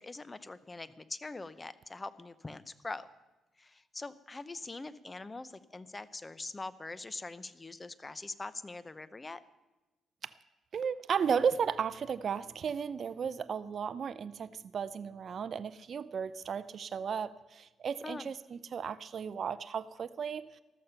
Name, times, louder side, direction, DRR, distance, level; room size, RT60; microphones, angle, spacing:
voice 1, 0.0-3.1 3.6-9.4 18.0-18.3, left 3 dB, 20° left, 16 dB, 0.7 m, -43 dB
voice 2, 10.7-20.5, right 7 dB, 50° right, 14 dB, 0.5 m, -34 dB
13.5 x 13.0 x 5.7 m, 1.1 s
cardioid pair, 90°, 0 cm